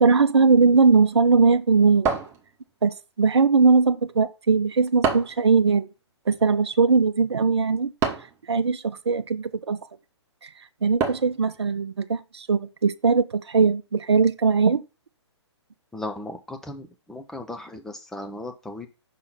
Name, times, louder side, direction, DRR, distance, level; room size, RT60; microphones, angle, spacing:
voice 1, 0.0-2.1 2.8-5.9 6.3-7.9 8.5-9.8 10.4-10.5 10.8-14.8, right 4 dB, 65° right, 0.6 m, -20 dB
sound 1, 2.1-2.9 5.0-5.5 8.0-8.4 11.0-11.4, right 5 dB, 15° right, 1.1 m, -27 dB
voice 2, 15.9-18.9, left 2 dB, 5° left, 0.6 m, -36 dB
5.6 x 3.8 x 5.9 m
figure-of-eight pair, 125°, 15 cm